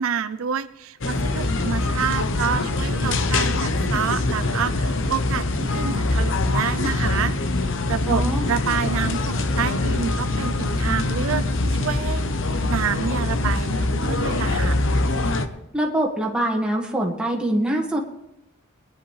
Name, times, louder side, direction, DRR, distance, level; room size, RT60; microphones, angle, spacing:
voice 1, 0.0-12.2 12.7-14.8, right 7 dB, 70° right, 11 dB, 0.5 m, -28 dB
sound 1, 1.0-15.5, left 2 dB, 60° left, 0.9 m, -23 dB
voice 2, 8.1-8.5 15.7-18.0, right 1 dB, 5° right, -1 dB, 1.8 m, -24 dB
21.5 x 10.5 x 3.3 m, 0.88 s
head